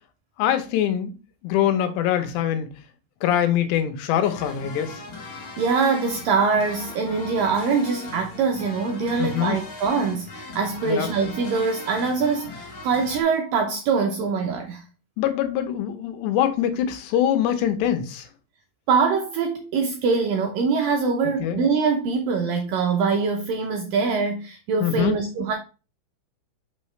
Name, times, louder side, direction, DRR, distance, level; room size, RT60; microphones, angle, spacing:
voice 1, 0.4-1.1 1.4-2.7 3.2-5.0 9.2-9.6 10.9-11.1 15.2-18.3 21.4-21.6 24.8-25.2, left 10 dB, 85° left, 3.1 m, -23 dB
sound 1, 4.2-13.2, left 2 dB, 40° left, 2.2 m, -39 dB
voice 2, 5.6-14.8 18.9-25.5, right 5 dB, 80° right, 2.0 m, -23 dB
6.7 x 5.8 x 3.2 m
omnidirectional pair, 4.9 m